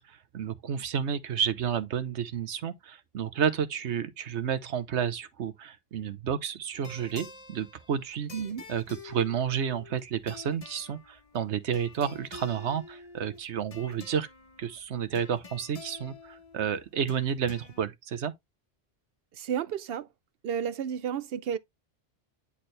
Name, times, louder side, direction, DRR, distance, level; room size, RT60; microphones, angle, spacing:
voice 1, 0.0-8.3 8.7-14.3 14.6-18.3, right 8 dB, 90° right, 1.2 m, -31 dB
sound 1, 6.7-17.8, left 4 dB, 35° left, 0.9 m, -49 dB
voice 2, 8.3-8.6 19.3-20.1 20.4-21.6, right 8 dB, 65° right, 0.8 m, -32 dB
10.0 x 4.3 x 3.3 m
omnidirectional pair, 1.1 m